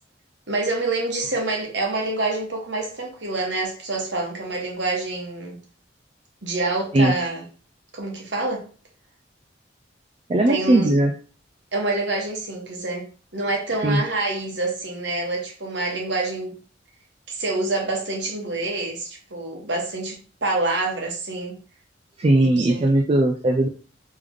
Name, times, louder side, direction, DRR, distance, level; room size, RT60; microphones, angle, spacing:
voice 1, 0.5-5.6 6.4-7.4 7.9-8.6 10.5-10.9 11.7-16.6 17.3-21.6 22.3-22.9, right 2 dB, 65° right, 0 dB, 1.3 m, -27 dB
voice 2, 10.3-11.1 13.8-14.0 22.2-23.7, right 1 dB, 30° right, 2 dB, 0.3 m, -18 dB
3.4 x 3.2 x 3.8 m, 0.39 s
head